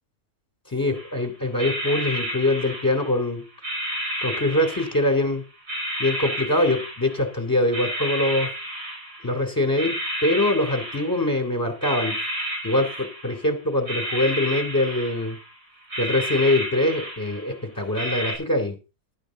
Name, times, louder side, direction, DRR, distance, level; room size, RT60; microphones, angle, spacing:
voice 1, 0.7-3.4 4.2-5.4 6.0-8.5 9.2-9.9 10.2-12.1 12.6-15.4 16.0-18.8, left 1 dB, 10° left, 7 dB, 3.5 m, -23 dB
sound 1, 0.9-1.2 1.6-3.2 3.6-5.3 5.7-7.4 7.7-9.4 9.7-11.4 11.8-13.4 13.9-15.5 15.8-17.6 17.9-18.4, equal, 85° right, 6.3 m, -31 dB
12.0 x 12.0 x 4.0 m, 0.31 s
omnidirectional pair, 1.7 m